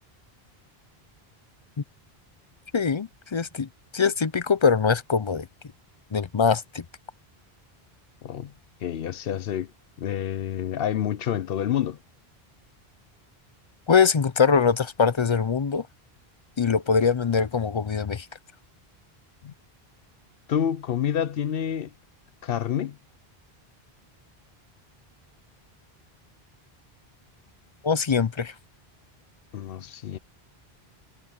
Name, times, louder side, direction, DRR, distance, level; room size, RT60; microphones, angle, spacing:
voice 1, 2.7-5.5 6.1-6.8 13.9-15.9 16.6-18.3 27.8-28.5, left 6 dB, 35° left, 0.5 m, -23 dB
voice 2, 8.2-8.5 8.8-9.7 10.0-12.0 19.4-19.5 20.5-21.9 22.4-23.0 29.5-30.2, left 9 dB, 70° left, 0.8 m, -28 dB
omnidirectional pair, 1.0 m